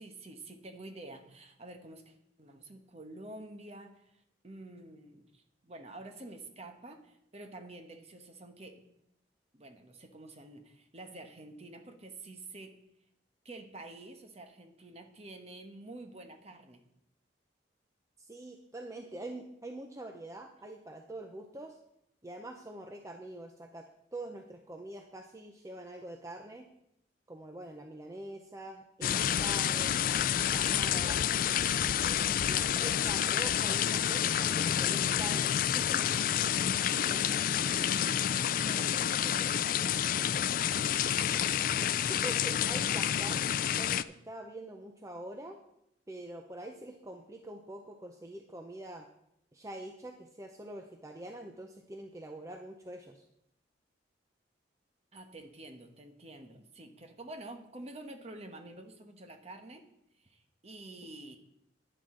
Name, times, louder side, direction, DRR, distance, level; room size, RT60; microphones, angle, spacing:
voice 1, 0.0-8.8 9.5-12.8 13.4-16.8 32.2-32.6 36.6-38.3 38.6-41.4 55.1-59.8 60.2-61.4, right 2 dB, 35° right, 6 dB, 1.1 m, -49 dB
voice 2, 18.2-21.8 22.2-23.9 24.1-26.7 27.3-31.2 32.0-36.1 42.0-45.6 46.1-49.1 49.5-53.2, right 1 dB, 15° right, 4 dB, 0.6 m, -45 dB
sound 1, 29.0-44.0, left 10 dB, 50° left, 0.3 m, -29 dB
11.5 x 10.0 x 3.8 m, 0.79 s
head